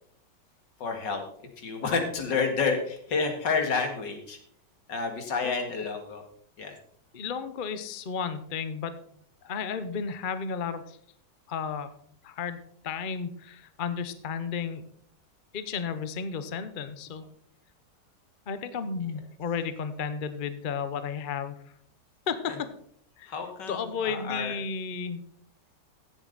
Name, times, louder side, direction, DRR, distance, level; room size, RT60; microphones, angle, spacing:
voice 1, 0.8-1.2 1.6-4.4 4.9-6.2 6.6-6.7 22.5-22.6 23.3-24.6, left 4 dB, 85° left, 4 dB, 2.5 m, -29 dB
voice 2, 7.1-9.0 9.4-11.0 11.5-11.9 12.2-12.6 12.8-14.8 15.5-17.2 18.5-21.5 22.3-22.6 23.2-23.3 23.7-25.2, left 6 dB, 40° left, 11 dB, 0.8 m, -33 dB
16.0 x 7.8 x 4.0 m, 0.64 s
omnidirectional pair, 1.9 m